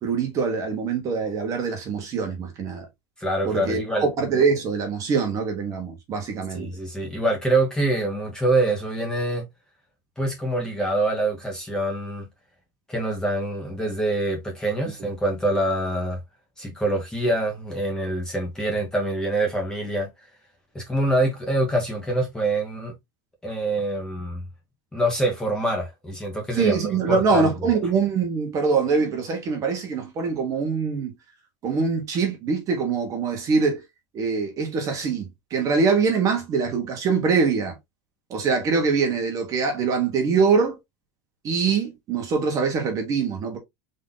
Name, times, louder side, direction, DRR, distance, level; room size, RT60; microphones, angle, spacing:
voice 1, 0.0-2.9 3.4-6.7 15.0-15.1 26.5-31.1 31.6-33.8 34.1-37.8 38.3-40.8 41.4-43.6, right 5 dB, 30° right, 1.5 m, -23 dB
voice 2, 3.2-4.1 6.5-9.4 10.2-12.3 12.9-16.2 16.6-20.1 20.7-22.9 23.4-24.4 24.9-26.8 27.1-27.5, right 1 dB, 5° left, 1.4 m, -25 dB
3.9 x 3.2 x 3.9 m
supercardioid pair, 160°, 11 cm